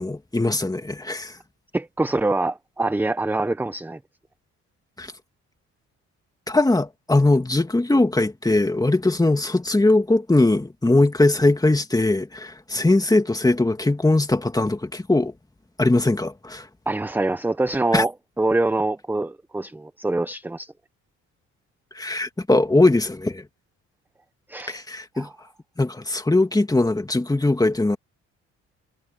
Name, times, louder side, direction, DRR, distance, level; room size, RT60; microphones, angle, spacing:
voice 1, 0.0-1.4 5.0-5.1 6.5-15.3 15.8-16.7 17.9-18.0 21.9-23.4 24.7-25.3 25.8-28.0, left 2 dB, 10° left, 2.3 m, -20 dB
voice 2, 1.7-4.0 16.9-20.7 24.5-24.8 25.1-25.3, right 2 dB, 5° right, 0.6 m, -25 dB
cardioid pair, 90°, 30 cm